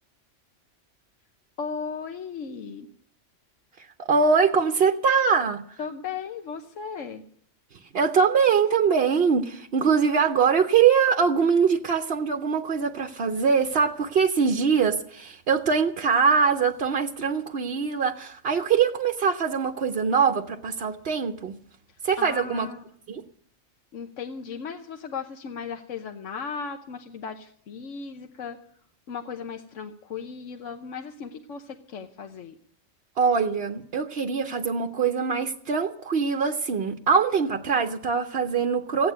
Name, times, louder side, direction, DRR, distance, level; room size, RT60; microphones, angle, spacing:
voice 1, 1.6-2.9 5.8-7.2 21.9-22.8 23.9-28.6 29.1-32.6, left 6 dB, 80° left, 5 dB, 1.3 m, -36 dB
voice 2, 4.0-5.8 7.9-21.6 22.0-22.7 23.1-23.2 33.2-39.1, right 6 dB, 55° right, 4 dB, 1.0 m, -23 dB
16.0 x 9.3 x 9.2 m, 0.64 s
omnidirectional pair, 1.3 m